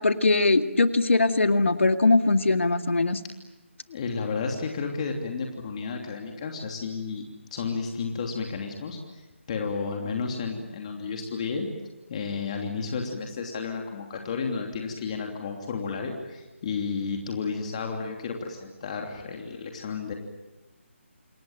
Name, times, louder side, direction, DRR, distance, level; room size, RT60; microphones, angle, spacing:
voice 1, 0.0-3.2, left 3 dB, 70° left, 8 dB, 2.1 m, -21 dB
voice 2, 3.9-7.3 7.5-9.2 9.5-11.7 12.1-20.1, left 5 dB, 30° left, 2 dB, 3.0 m, -32 dB
28.5 x 22.0 x 9.0 m, 1.1 s
figure-of-eight pair, 155°, 7 cm